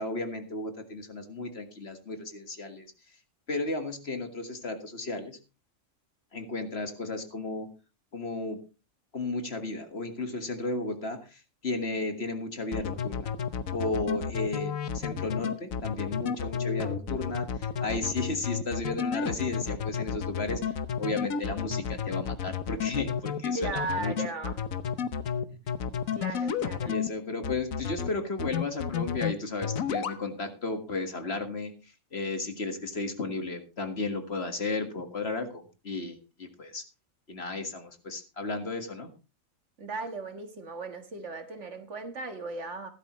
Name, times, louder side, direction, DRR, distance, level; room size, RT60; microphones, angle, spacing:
voice 1, 0.0-2.9 3.5-5.4 6.3-7.7 8.1-8.6 9.1-13.3 13.7-17.5 17.8-20.7 21.0-24.1 26.9-31.7 32.1-36.8 37.3-39.1, left 3 dB, 50° left, 2.0 m, -34 dB
sound 1, 12.7-27.1 27.4-28.1 28.4-29.3 29.6-30.2, left 7 dB, 90° left, 1.4 m, -31 dB
voice 2, 23.5-24.6 26.1-26.9 39.8-42.9, right 3 dB, 60° right, 1.9 m, -36 dB
16.0 x 12.0 x 3.1 m
omnidirectional pair, 1.4 m